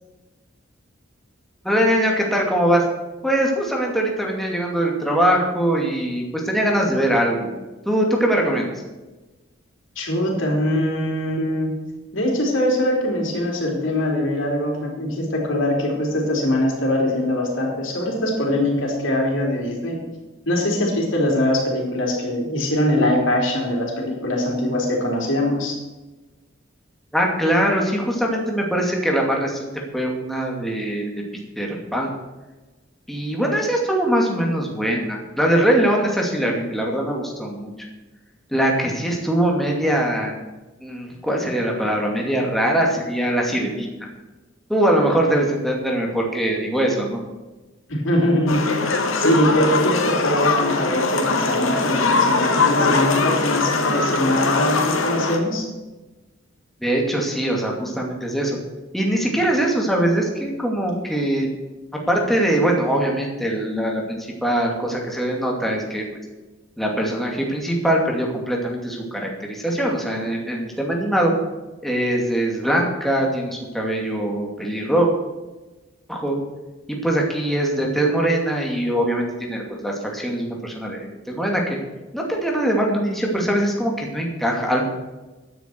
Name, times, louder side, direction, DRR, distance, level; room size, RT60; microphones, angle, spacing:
voice 1, 1.6-2.8 3.2-7.5 7.9-8.7 27.1-31.2 31.6-32.1 33.1-37.7 38.5-40.4 40.8-44.1 44.7-47.2 56.8-58.6 58.9-61.5 62.1-66.0 66.8-71.3 71.8-75.1 76.1-76.4 76.9-81.8 82.1-84.8, right 1 dB, ahead, -1 dB, 2.4 m, -22 dB
voice 2, 10.0-11.8 12.1-20.0 20.5-25.8 47.9-48.7 49.1-55.7, left 1 dB, 70° left, -1 dB, 4.1 m, -22 dB
sound 1, 48.5-55.4, left 3 dB, 85° left, 1.9 m, -21 dB
15.0 x 10.5 x 4.6 m, 1.1 s
head